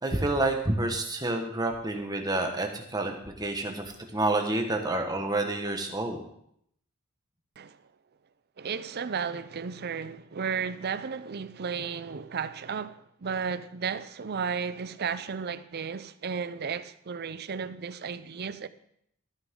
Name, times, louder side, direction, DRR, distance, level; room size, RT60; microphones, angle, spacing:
voice 1, 0.0-3.8 4.1-6.2, right 2 dB, 20° right, 1.4 m, -28 dB
voice 2, 8.6-18.7, right 6 dB, 50° right, 0.5 m, -34 dB
14.0 x 9.7 x 3.8 m
head